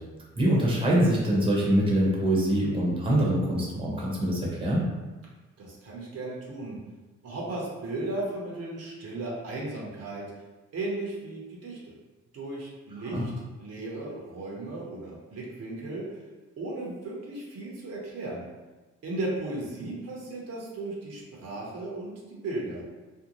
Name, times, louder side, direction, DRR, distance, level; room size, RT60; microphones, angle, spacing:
voice 1, 0.4-4.9 13.1-13.2, right 1 dB, 15° right, -5 dB, 0.8 m, -24 dB
voice 2, 5.6-6.8 7.2-10.3 10.7-11.9 12.3-13.3 13.6-16.2 16.6-18.5 19.0-22.8, right 2 dB, 55° right, -4 dB, 0.7 m, -35 dB
2.5 x 2.0 x 2.9 m, 1.2 s
cardioid pair, 90°, 30 cm